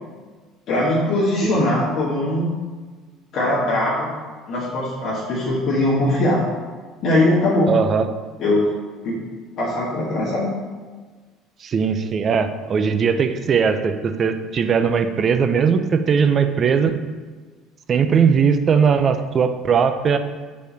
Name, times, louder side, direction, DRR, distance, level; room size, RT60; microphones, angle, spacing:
voice 1, 0.7-2.5 3.3-4.1 4.5-6.4 7.0-7.7 8.4-8.6 9.0-9.2 9.6-10.5, left 1 dB, 55° left, -7 dB, 1.8 m, -20 dB
voice 2, 7.7-8.2 11.6-17.0 17.9-20.2, right 6 dB, 40° right, 9 dB, 0.5 m, -19 dB
5.4 x 4.3 x 5.1 m, 1.4 s
supercardioid pair, 90°, 0 cm